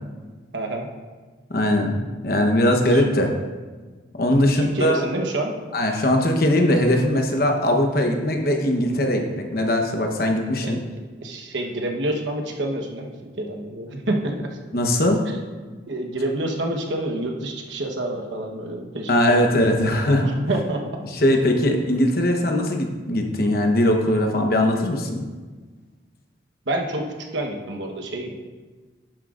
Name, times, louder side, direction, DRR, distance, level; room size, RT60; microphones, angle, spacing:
voice 1, 0.5-0.9 2.9-3.0 4.4-5.5 10.6-10.8 11.2-14.6 15.9-19.4 20.2-21.0 26.6-28.4, right 1 dB, 85° right, 2 dB, 1.1 m, -28 dB
voice 2, 1.5-2.0 2.2-3.3 4.2-5.0 5.7-10.8 14.7-15.2 19.1-20.3 21.2-25.3, left 1 dB, 55° left, 3 dB, 1.0 m, -20 dB
11.0 x 7.8 x 2.5 m, 1.4 s
head